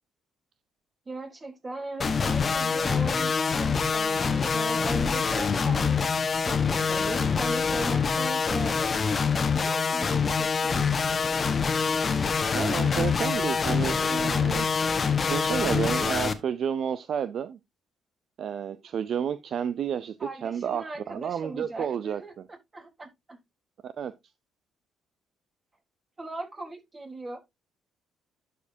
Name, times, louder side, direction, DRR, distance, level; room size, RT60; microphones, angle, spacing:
voice 1, 1.1-6.1 6.5-8.9 9.5-10.8 20.2-23.4 26.2-27.4, right 2 dB, 30° right, 3.7 m, -38 dB
sound 1, 2.0-16.3, left 5 dB, 40° left, 1.1 m, -25 dB
voice 2, 12.5-14.7 15.1-17.6 18.4-22.2 23.8-24.1, right 8 dB, 60° right, 0.4 m, -31 dB
11.5 x 5.0 x 2.7 m
hypercardioid pair, 55°, 0 cm